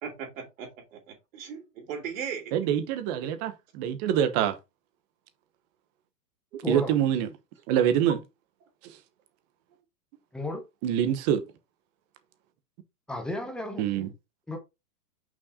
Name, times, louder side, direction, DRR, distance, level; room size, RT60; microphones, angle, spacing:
voice 1, 0.0-2.5 6.7-6.8, right 7 dB, 50° right, 3.3 m, -38 dB
voice 2, 2.5-4.6 6.7-7.3 7.7-8.2 8.8-9.0 10.8-11.4 13.8-14.1, right 10 dB, 25° right, 0.9 m, -25 dB
voice 3, 6.6-6.9 10.3-10.6 13.1-13.8 14.5-14.6, left 1 dB, ahead, 0.8 m, -33 dB
6.0 x 4.5 x 4.1 m
hypercardioid pair, 150°, 49 cm